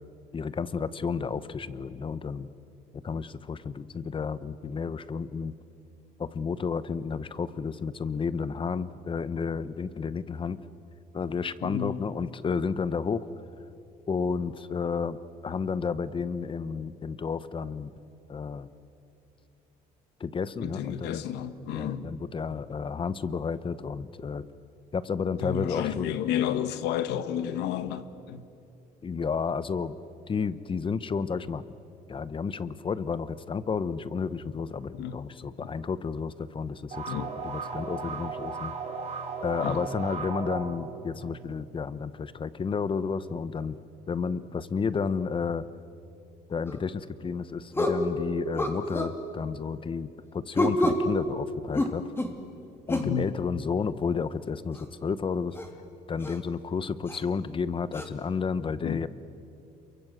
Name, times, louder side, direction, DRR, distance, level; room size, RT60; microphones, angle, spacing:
voice 1, 0.3-2.5 2.9-5.5 6.2-10.6 11.1-13.3 14.1-17.9 18.3-18.7 20.2-21.2 21.7-24.5 24.9-26.2 29.0-30.0 30.3-31.6 32.1-38.7 39.4-43.8 44.1-45.6 46.5-52.1 52.9-55.5 56.1-59.1, left 5 dB, 30° left, 0.9 m, -31 dB
voice 2, 11.6-12.0 20.6-22.1 25.4-28.5 35.0-35.2 35.6-35.7 37.1-37.3 39.6-39.8 53.0-53.3 58.8-59.0, left 9 dB, 90° left, 1.3 m, -31 dB
sound 1, 36.9-41.6, right 4 dB, 40° right, 3.4 m, -36 dB
sound 2, 46.7-46.8 47.7-48.1 48.6-49.2 50.5-51.1 51.7-52.4 52.9-53.1 54.7-54.9 55.5-55.7 56.2-56.4 57.1-57.2 57.9-58.0, left 1 dB, 15° left, 2.7 m, -27 dB
28.0 x 23.5 x 7.9 m
cardioid pair, 110°, 17 cm